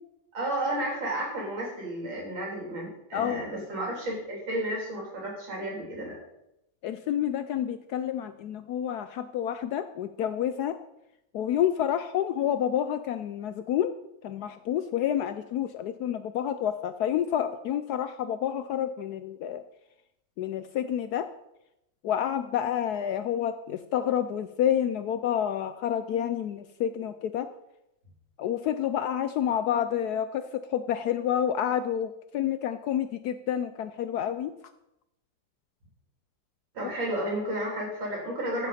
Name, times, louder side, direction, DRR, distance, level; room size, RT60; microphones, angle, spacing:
voice 1, 0.3-6.2 36.7-38.7, right 1 dB, 85° right, -2 dB, 4.1 m, -32 dB
voice 2, 3.1-3.4 6.8-10.8 11.3-13.9 14.2-19.6 20.4-21.3 22.0-27.5 28.4-34.5 36.8-36.9, left 10 dB, 75° left, 11 dB, 0.9 m, -29 dB
14.5 x 7.1 x 4.2 m, 0.85 s
omnidirectional pair, 2.1 m